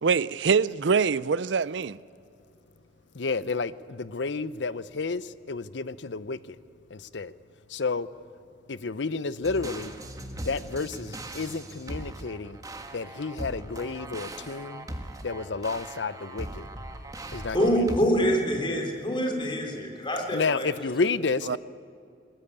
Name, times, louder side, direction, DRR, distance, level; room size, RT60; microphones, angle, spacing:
voice 1, 0.0-2.0 21.5-21.6, right 5 dB, 75° right, 0.5 m, -24 dB
voice 2, 3.2-5.2 5.5-6.6 6.9-7.3 7.7-8.1 8.7-9.9 10.3-12.6 12.9-14.9 15.2-16.7 17.3-18.1 20.3-21.6, left 4 dB, 75° left, 0.7 m, -31 dB
sound 1, 9.4-18.0, right 1 dB, 20° right, 1.6 m, -39 dB
voice 3, 17.5-20.7, equal, 25° left, 3.7 m, -25 dB
22.0 x 21.0 x 8.8 m
head